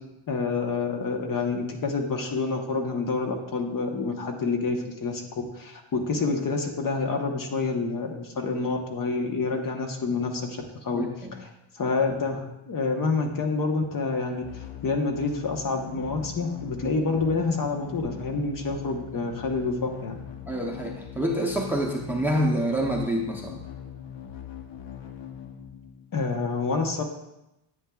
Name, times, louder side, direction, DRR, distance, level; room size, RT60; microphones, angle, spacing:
voice 1, 0.3-11.0 11.4-11.5 11.7-20.2 26.1-27.0, left 4 dB, 40° left, 3 dB, 1.1 m, -28 dB
voice 2, 10.9-11.3 20.4-23.6, equal, 5° right, 0 dB, 0.7 m, -27 dB
sound 1, 14.4-26.4, left 9 dB, 60° left, 0.9 m, -41 dB
9.9 x 8.9 x 2.4 m, 0.89 s
cardioid pair, 145°, 50 cm